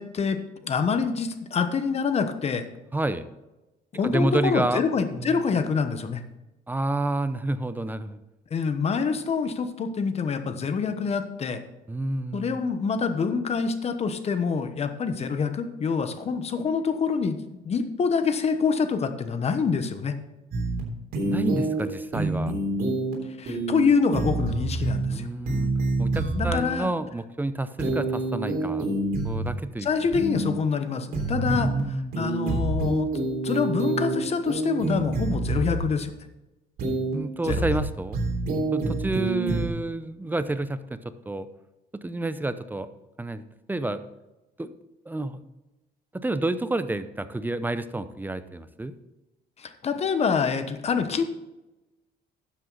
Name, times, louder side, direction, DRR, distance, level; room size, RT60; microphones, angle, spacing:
voice 1, 0.0-2.7 3.9-6.2 8.5-11.6 12.3-17.4 17.6-20.2 23.4-25.3 26.3-26.9 29.8-33.1 33.4-36.1 37.4-37.6 49.6-51.2, left 5 dB, 40° left, 9 dB, 1.1 m, -26 dB
voice 2, 2.9-3.3 4.0-4.8 5.2-5.4 6.7-8.2 11.9-12.6 21.2-22.5 25.1-25.7 26.0-28.9 29.2-29.9 31.4-32.1 37.1-38.2 38.7-41.0 41.3-41.5 42.0-42.9 43.2-44.0 44.6-44.7 45.1-45.5 46.1-48.9, right 2 dB, 10° right, 12 dB, 0.6 m, -29 dB
sound 1, 20.5-20.8 21.1-21.8 22.1-23.1 23.5-23.8 24.1-25.1 25.4-26.5 27.8-29.5 30.1-30.5 31.1-31.8 32.1-34.1 34.5-35.8 36.8-37.1 37.5-37.8 38.1-39.7, right 2 dB, 60° right, 3.3 m, -27 dB
12.0 x 7.8 x 4.0 m, 1.0 s
cardioid pair, 110°, 17 cm